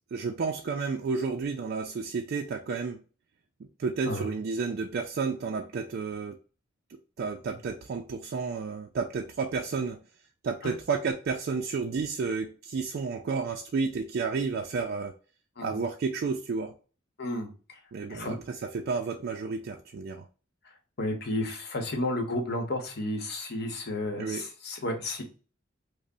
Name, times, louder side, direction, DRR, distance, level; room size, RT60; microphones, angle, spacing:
voice 1, 0.1-3.0 3.8-6.4 7.2-10.0 10.4-15.1 15.6-16.7 17.9-20.3 24.2-24.5, right 4 dB, 55° right, 0.3 m, -31 dB
voice 2, 17.2-17.5 18.1-18.4 21.0-25.2, left 1 dB, 60° left, 0.9 m, -32 dB
5.1 x 2.0 x 2.6 m
head